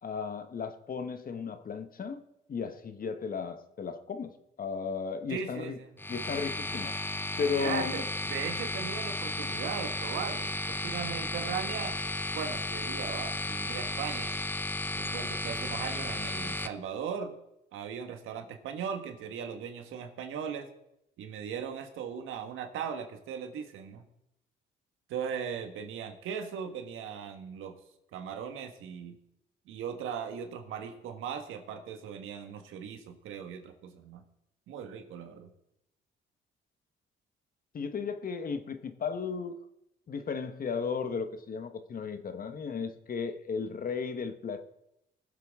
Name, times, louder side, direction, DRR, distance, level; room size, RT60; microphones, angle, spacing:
voice 1, 0.0-2.2 2.5-5.8 6.1-7.0 7.4-8.0 37.7-39.7 40.1-44.6, left 5 dB, 45° left, 9 dB, 1.2 m, -35 dB
voice 2, 5.3-5.9 7.5-12.0 12.3-14.3 14.9-17.3 17.7-20.7 21.2-24.0 25.1-27.8 28.1-29.2 29.7-34.2 34.7-35.5, right 7 dB, 85° right, 6 dB, 1.6 m, -38 dB
sound 1, 6.0-16.7, left 2 dB, 10° left, 0.7 m, -34 dB
21.0 x 7.6 x 3.7 m, 0.83 s
cardioid pair, 90°, 20 cm